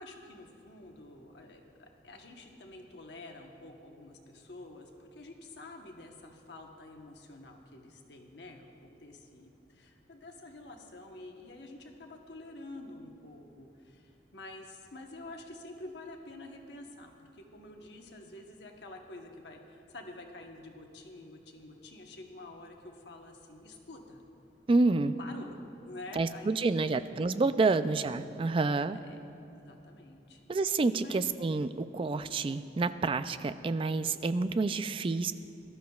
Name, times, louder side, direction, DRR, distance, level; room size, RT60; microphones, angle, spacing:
voice 1, 0.0-24.2 25.2-25.6 25.8-26.8 27.8-28.1 29.0-29.2 29.5-30.4 31.0-31.3, left 2 dB, 75° left, 2 dB, 1.1 m, -48 dB
voice 2, 24.7-25.2 26.1-29.0 30.5-35.3, right 3 dB, 30° right, 12 dB, 0.3 m, -28 dB
20.0 x 12.5 x 2.3 m, 2.6 s
head